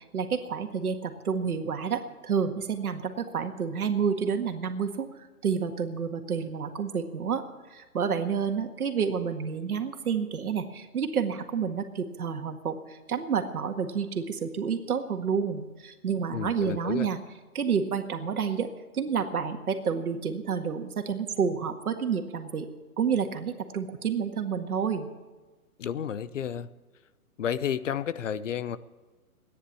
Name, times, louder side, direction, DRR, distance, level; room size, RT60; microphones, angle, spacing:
voice 1, 0.1-5.1 5.4-7.4 7.7-17.2 17.5-18.7 18.9-22.7 23.0-25.1, right 6 dB, 75° right, 6 dB, 1.8 m, -29 dB
voice 2, 16.3-17.1 25.8-26.7 27.4-28.8, left 8 dB, 55° left, 16 dB, 0.7 m, -31 dB
14.5 x 10.0 x 8.6 m, 1.3 s
hypercardioid pair, 155°, 44 cm